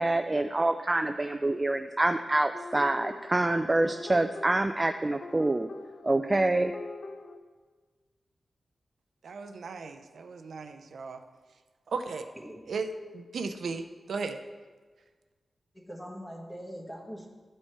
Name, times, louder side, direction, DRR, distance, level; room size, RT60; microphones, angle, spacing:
voice 1, 0.0-5.7 6.0-6.7, right 2 dB, 25° right, 6 dB, 0.3 m, -26 dB
sound 1, 2.5-7.4, left 3 dB, 55° left, 0.6 m, -43 dB
voice 2, 9.2-11.2 11.9-12.3 12.7-14.4, right 4 dB, 80° right, 7 dB, 0.5 m, -36 dB
voice 3, 12.4-12.7 15.7-17.3, equal, 10° left, -1 dB, 1.5 m, -42 dB
12.5 x 4.5 x 4.4 m, 1.4 s
wide cardioid pair, 100°, 0 cm